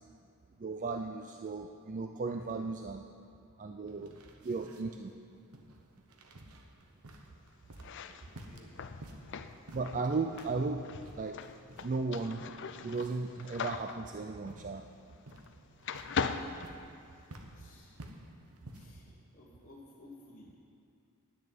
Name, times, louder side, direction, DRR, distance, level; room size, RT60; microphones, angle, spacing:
voice 1, 0.6-3.0 3.6-4.1 4.4-5.1 9.7-11.4 11.8-12.4 12.8-14.9, right 3 dB, 35° right, 5 dB, 0.4 m, -35 dB
voice 2, 3.8-4.2 4.6-4.7 8.3-8.7 17.5-18.0 18.7-20.5, left 2 dB, 40° left, -7 dB, 1.4 m, -56 dB
sound 1, 3.9-19.1, right 1 dB, 85° right, 1.0 m, -54 dB
sound 2, 7.7-15.5 15.8-17.5, left 5 dB, 55° left, 0.4 m, -40 dB
10.0 x 6.7 x 9.1 m, 2.4 s
head